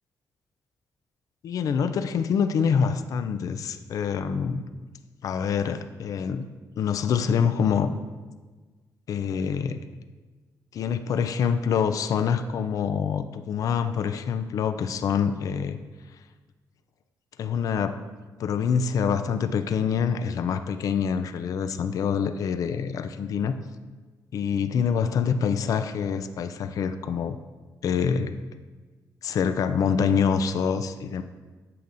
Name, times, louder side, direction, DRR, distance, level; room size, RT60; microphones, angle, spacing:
voice 1, 1.4-4.6 5.2-6.4 6.8-7.9 9.1-9.8 10.7-15.8 17.4-18.0 18.4-23.6 24.3-27.4 27.8-28.3 29.2-31.2, left 7 dB, 60° left, 9 dB, 0.4 m, -25 dB
8.4 x 7.4 x 2.6 m, 1.3 s
cardioid pair, 135°, 7 cm